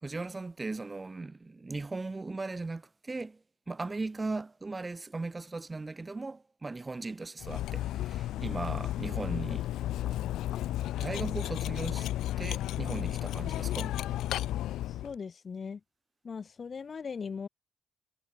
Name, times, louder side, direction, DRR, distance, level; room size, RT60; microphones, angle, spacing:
voice 1, 0.0-9.7 11.0-12.1 12.4-14.0, right 3 dB, 20° right, 4.2 m, -38 dB
Cutlery silverware, 7.4-15.1, left 13 dB, 85° left, 0.8 m, -33 dB
voice 2, 14.9-15.8 16.2-17.5, left 5 dB, 40° left, 2.1 m, -39 dB
cardioid pair, 90°, 0 cm